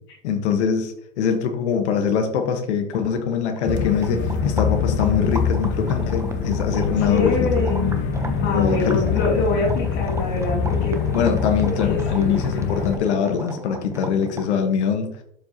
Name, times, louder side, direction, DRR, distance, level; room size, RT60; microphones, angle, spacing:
voice 1, 0.2-7.7 8.5-9.1 11.1-15.2, left 7 dB, 75° left, 5 dB, 1.4 m, -23 dB
sound 1, 2.9-14.6, right 3 dB, 10° right, 0.8 m, -37 dB
sound 2, 3.6-13.0, left 6 dB, 35° left, 1.1 m, -24 dB
voice 2, 6.7-7.9 8.4-11.0 11.7-12.4, left 3 dB, 50° left, -6 dB, 3.1 m, -25 dB
11.5 x 4.7 x 2.9 m, 0.69 s
hypercardioid pair, 120°, 34 cm